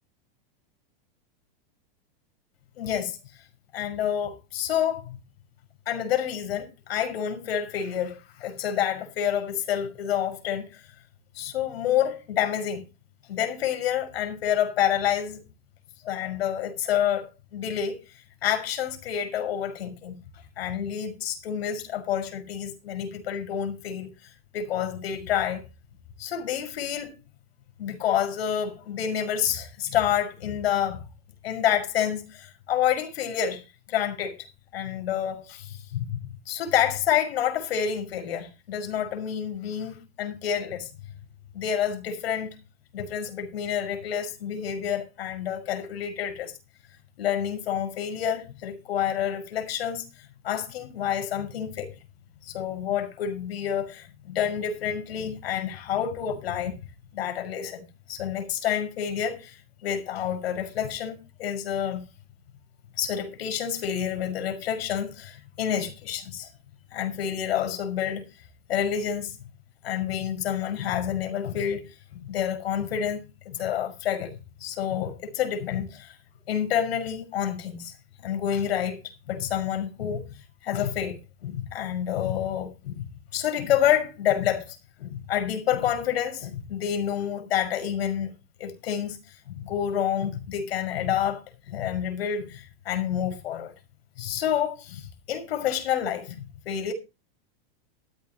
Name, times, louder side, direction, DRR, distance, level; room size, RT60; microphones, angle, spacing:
voice 1, 2.8-3.2 3.7-5.2 5.9-10.9 11.4-12.8 13.3-15.4 16.0-18.0 18.4-20.2 20.6-25.6 26.2-27.2 27.8-31.0 31.4-33.6 33.9-34.5 34.7-36.1 36.5-40.9 41.5-42.6 42.9-46.5 47.2-51.9 52.4-56.8 57.1-62.0 63.0-66.5 66.9-68.2 68.7-69.3 69.8-76.2 76.5-77.9 78.2-80.2 80.6-83.0 83.3-88.3 88.6-89.2 89.5-93.7 94.2-96.9, left 9 dB, 80° left, 5.6 m, -28 dB
15.5 x 14.0 x 3.0 m
supercardioid pair, 170°, 30 cm